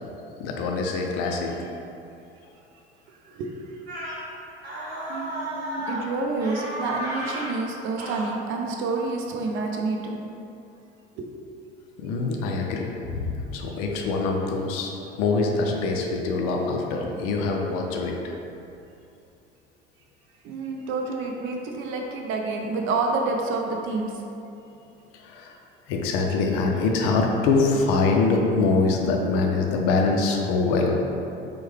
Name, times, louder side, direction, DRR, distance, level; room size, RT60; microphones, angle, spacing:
voice 1, 0.4-1.7 12.0-18.3 25.1-25.6 25.9-30.9, left 3 dB, 45° left, 1 dB, 0.5 m, -24 dB
voice 2, 3.1-3.6 5.1-10.2 11.2-11.3 20.4-24.1, right 3 dB, 40° right, 1 dB, 0.5 m, -28 dB
sound 1, 3.9-4.2 4.6-6.1 6.4-7.5 8.0-8.3, equal, 85° right, 0.8 m, -33 dB
4.4 x 2.2 x 3.1 m, 2.7 s
figure-of-eight pair, 65°, 31 cm